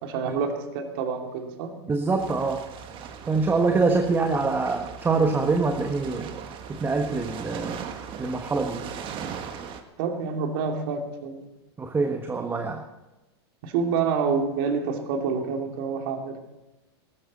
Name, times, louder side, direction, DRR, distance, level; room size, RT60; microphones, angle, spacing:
voice 1, 0.0-1.7 10.0-11.5 13.6-16.4, right 5 dB, 60° right, 4 dB, 2.5 m, -27 dB
voice 2, 1.9-2.6 3.3-6.3 6.7-7.8 8.2-8.8 11.8-12.8, right 4 dB, 15° right, 4 dB, 1.3 m, -24 dB
sound 1, 2.2-9.8, right 7 dB, 35° right, 1.6 m, -39 dB
19.0 x 13.5 x 4.1 m, 1.0 s
hypercardioid pair, 110°, 14 cm